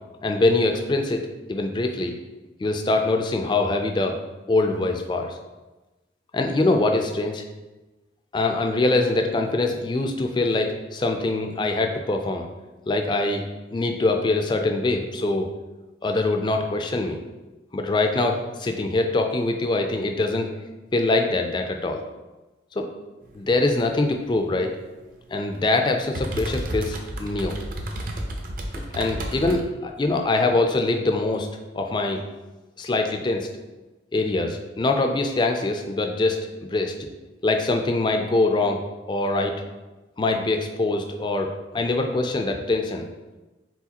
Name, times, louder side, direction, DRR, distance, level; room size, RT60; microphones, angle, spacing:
voice 1, 0.2-1.2 1.5-2.1 2.6-4.2 4.5-5.3 6.3-7.4 8.3-12.5 12.9-13.4 13.7-15.5 16.0-17.2 17.7-20.5 20.9-22.0 22.8-22.9 23.3-24.7 25.3-27.6 28.8-31.5 31.7-32.2 32.8-33.5 34.1-36.9 37.4-38.8 39.1-39.5 40.2-43.1, left 2 dB, 25° left, 4 dB, 0.3 m, -23 dB
sound 1, 23.2-29.6, right 1 dB, 50° right, 0.6 m, -34 dB
4.7 x 3.8 x 2.9 m, 1.1 s
head